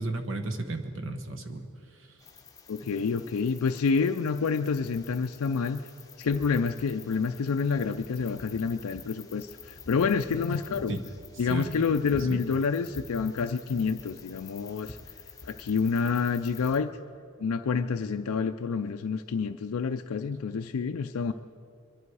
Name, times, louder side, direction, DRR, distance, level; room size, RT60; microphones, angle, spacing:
voice 1, 0.0-1.7 2.0-2.1 10.9-11.0 11.5-11.7 12.3-12.4, right 2 dB, 55° right, 5 dB, 1.1 m, -33 dB
sound 1, 2.2-16.8, left 4 dB, 15° left, 0.8 m, -48 dB
voice 2, 2.7-5.8 6.2-11.0 11.4-15.0 15.4-16.9 17.4-21.3, left 5 dB, 80° left, 6 dB, 0.4 m, -28 dB
23.0 x 11.0 x 4.7 m, 2.4 s
head